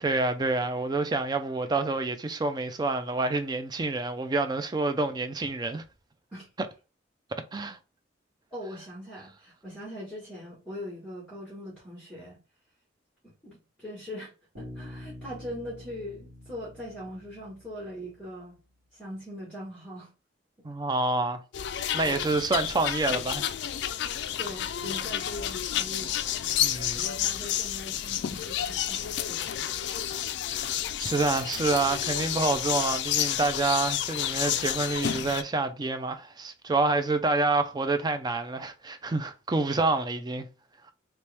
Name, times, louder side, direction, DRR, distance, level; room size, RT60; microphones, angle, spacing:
voice 1, 0.0-5.8 7.3-7.8 20.6-21.4 21.9-23.5 26.6-27.1 30.5-30.7 31.0-40.5, right 3 dB, 20° right, 0.4 m, -28 dB
voice 2, 8.5-12.4 13.2-18.6 18.9-20.1 22.0-22.5 24.4-26.2 26.9-29.8 30.5-30.7, equal, ahead, 1.3 m, -41 dB
Bass guitar, 14.6-18.2, left 1 dB, 85° right, 2.0 m, -46 dB
sound 1, 21.5-35.4, left 10 dB, 60° left, 0.3 m, -30 dB
3.0 x 3.0 x 3.3 m
head